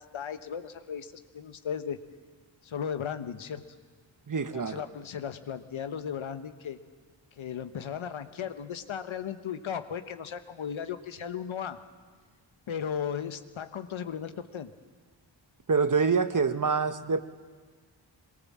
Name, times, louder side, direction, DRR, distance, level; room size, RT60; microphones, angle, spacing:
voice 1, 0.0-2.0 2.6-3.6 4.5-6.8 7.4-11.8 12.7-14.7, left 8 dB, 85° left, 9 dB, 1.1 m, -36 dB
voice 2, 4.3-4.9 15.7-17.2, right 5 dB, 40° right, 10 dB, 1.3 m, -26 dB
22.0 x 22.0 x 7.4 m, 1.5 s
cardioid pair, 40°, 47 cm